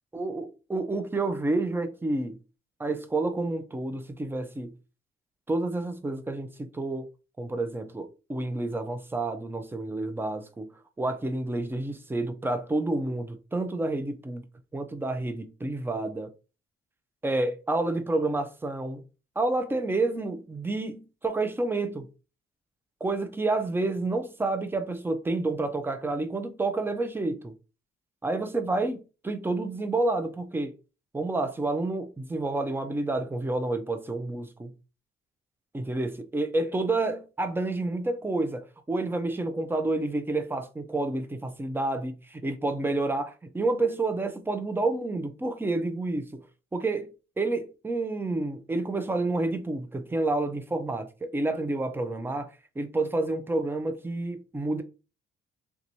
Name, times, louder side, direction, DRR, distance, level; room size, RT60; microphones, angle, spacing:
voice 1, 0.1-2.4 2.8-4.7 5.5-7.1 7.4-10.7 11.0-14.4 14.7-16.3 17.2-19.0 19.4-22.1 23.0-27.5 28.2-30.7 31.1-34.7 35.7-46.4 46.7-47.1 47.4-52.5 52.8-54.8, right 2 dB, 10° right, 0.5 m, -29 dB
3.5 x 2.9 x 2.6 m
cardioid pair, 90°, 20 cm